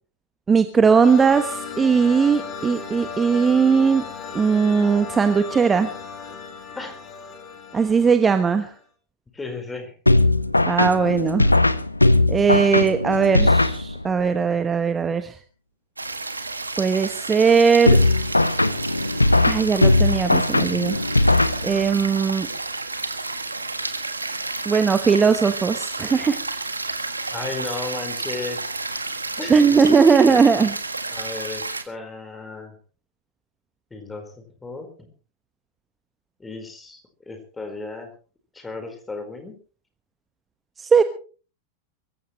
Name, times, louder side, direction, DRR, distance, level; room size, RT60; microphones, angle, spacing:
voice 1, 0.5-4.0 4.3-5.9 7.7-8.7 10.7-11.5 12.3-15.3 16.8-18.0 19.5-21.0 21.6-22.5 24.6-26.4 29.5-30.7 40.8-41.0, right 5 dB, 15° right, 9 dB, 1.2 m, -19 dB
sound 1, 1.0-8.7, left 5 dB, 30° left, 4.3 m, -35 dB
voice 2, 9.3-10.0 27.3-28.6 29.4-29.8 30.2-30.4 31.1-32.7 33.9-35.1 36.4-38.1 38.5-39.5, left 3 dB, 10° left, 6 dB, 4.4 m, -35 dB
sound 2, 10.1-14.3 17.9-22.1, left 2 dB, 85° left, 0.8 m, -19 dB
sound 3, 16.0-31.8, right 3 dB, 80° right, 1.5 m, -31 dB
24.0 x 15.5 x 3.2 m, 0.39 s
figure-of-eight pair, 90°, 0 cm